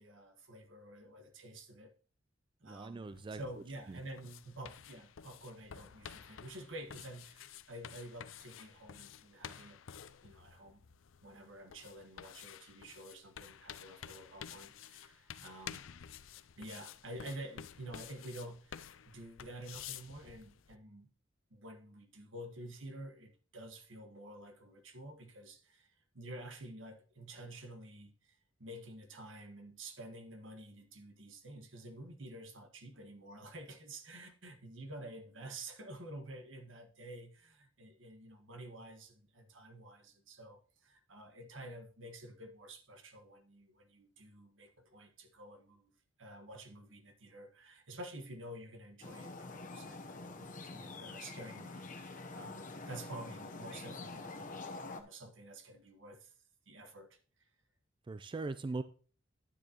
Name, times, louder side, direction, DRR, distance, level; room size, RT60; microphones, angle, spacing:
voice 1, 0.0-1.9 2.6-9.8 10.2-10.8 11.2-15.8 16.6-21.1 21.5-25.9 26.1-45.9 46.2-54.6 54.9-56.3 56.7-57.2, right 1 dB, 75° right, 1.5 m, -50 dB
voice 2, 2.6-3.4 3.9-4.0 58.1-58.8, right 3 dB, 25° right, 0.3 m, -40 dB
sound 1, 3.1-20.8, left 9 dB, 80° left, 0.5 m, -51 dB
sound 2, 49.0-55.0, left 3 dB, 40° left, 0.9 m, -46 dB
9.9 x 9.5 x 3.0 m
head